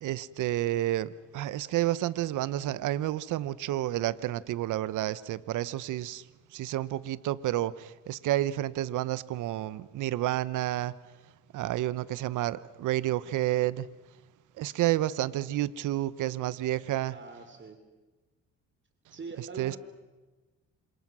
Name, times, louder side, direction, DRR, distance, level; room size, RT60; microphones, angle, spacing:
voice 1, 0.0-6.2 6.5-10.9 11.5-13.9 14.6-17.1 19.6-19.8, right 14 dB, 85° right, 17 dB, 0.9 m, -30 dB
voice 2, 17.1-17.8 19.1-19.8, right 5 dB, 40° right, 6 dB, 3.2 m, -42 dB
28.0 x 27.0 x 6.2 m, 1.2 s
cardioid pair, 90°, 30 cm